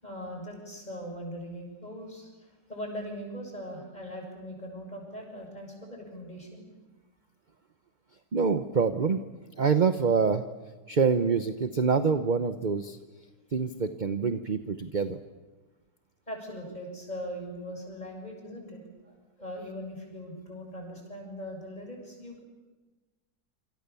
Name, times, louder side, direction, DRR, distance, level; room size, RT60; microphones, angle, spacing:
voice 1, 0.0-6.6 16.3-22.4, equal, 25° left, 1 dB, 7.2 m, -40 dB
voice 2, 8.3-9.2 9.6-10.4 10.9-13.0 13.5-15.2, right 5 dB, 35° right, 9 dB, 0.8 m, -26 dB
27.5 x 26.5 x 7.0 m, 1.2 s
omnidirectional pair, 1.8 m